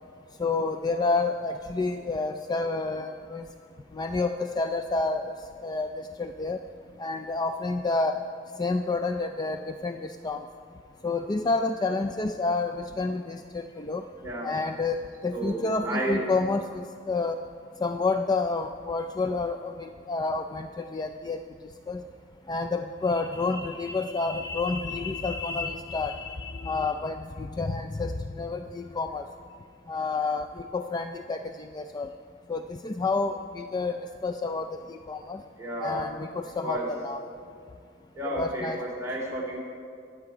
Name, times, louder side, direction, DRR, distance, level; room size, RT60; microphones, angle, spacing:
voice 1, 0.4-3.5 3.9-6.6 7.0-8.2 8.6-10.5 11.0-14.0 14.4-17.4 17.8-21.4 21.9-22.0 22.5-29.3 29.9-32.1 32.5-35.4 35.8-37.2 38.2-38.8, left 3 dB, 20° left, 7 dB, 0.3 m, -29 dB
voice 2, 14.2-14.6 15.3-16.3 35.6-36.1 36.6-36.9 38.1-39.6, right 1 dB, 15° right, -4 dB, 3.3 m, -32 dB
22.5 x 8.0 x 4.9 m, 2.3 s
head